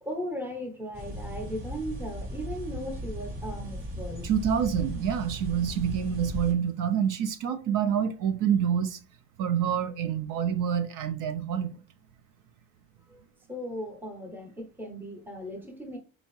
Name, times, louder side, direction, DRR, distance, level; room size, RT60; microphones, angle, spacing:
voice 1, 0.0-4.3 13.1-13.2 13.5-16.0, equal, 5° right, 0.7 m, -37 dB
sound 1, 0.9-6.5, equal, 90° right, 1.4 m, -37 dB
voice 2, 4.2-9.0 9.4-11.7, right 8 dB, 65° right, 0.5 m, -27 dB
4.2 x 2.7 x 3.0 m
cardioid pair, 155°, 34 cm